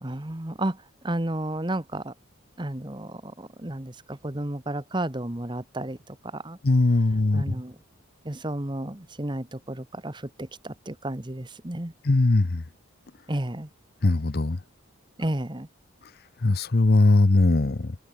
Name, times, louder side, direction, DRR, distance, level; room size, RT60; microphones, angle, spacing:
voice 1, 0.0-2.1 2.6-6.6 7.3-7.8 8.2-11.9 13.3-13.7 15.2-15.7, right 1 dB, 20° right, 1.2 m, -32 dB
voice 2, 6.6-7.5 12.0-12.6 14.0-14.6 16.4-18.0, left 2 dB, 45° left, 0.7 m, -20 dB
head